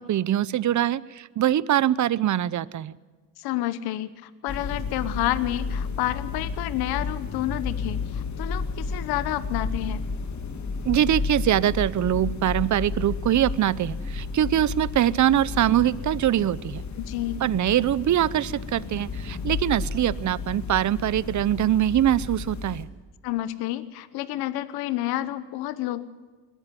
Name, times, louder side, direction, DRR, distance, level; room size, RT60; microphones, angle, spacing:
voice 1, 0.0-3.0 10.9-16.8 17.4-22.9, right 11 dB, 50° right, 20 dB, 0.8 m, -23 dB
voice 2, 3.4-10.0 17.0-17.5 23.2-26.0, left 14 dB, 90° left, 15 dB, 1.1 m, -29 dB
sound 1, 4.5-22.8, left 4 dB, 50° left, 2.6 m, -32 dB
21.5 x 14.0 x 9.4 m, 1.4 s
cardioid pair, 75°, 36 cm